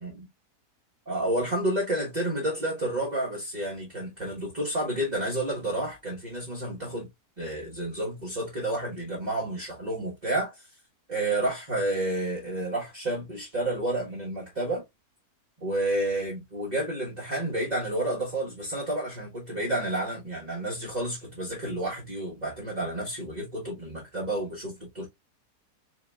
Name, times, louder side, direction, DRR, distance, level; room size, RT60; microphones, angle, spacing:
voice 1, 1.1-7.1 7.4-10.7 11.1-14.8 15.6-25.1, right 1 dB, 30° right, 1.4 m, -30 dB
4.4 x 3.8 x 2.3 m
omnidirectional pair, 1.7 m